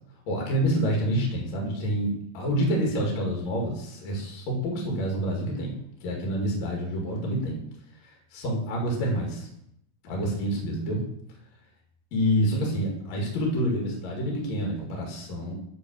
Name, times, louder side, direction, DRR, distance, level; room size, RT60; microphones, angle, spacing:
voice 1, 0.3-5.7 6.0-7.6 8.0-9.5 10.0-11.0 12.1-15.5, equal, 50° left, -1 dB, 2.4 m, -27 dB
9.8 x 4.1 x 6.1 m, 0.76 s
omnidirectional pair, 5.5 m